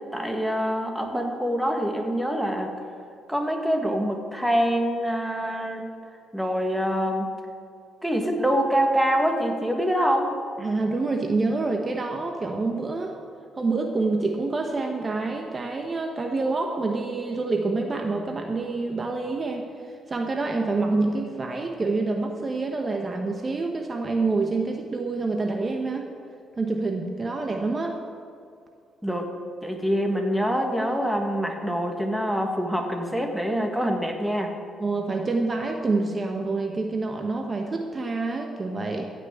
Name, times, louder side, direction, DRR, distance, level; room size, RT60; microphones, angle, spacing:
voice 1, 0.1-2.7 3.3-5.8 6.3-7.3 8.0-10.3 29.0-29.3 29.6-34.5, equal, ahead, 2 dB, 1.7 m, -25 dB
voice 2, 10.6-13.2 13.6-19.7 20.1-26.1 26.6-28.0 34.8-39.0, right 3 dB, 30° right, 3 dB, 1.1 m, -27 dB
15.0 x 6.1 x 8.4 m, 2.3 s
cardioid pair, 90°, 0 cm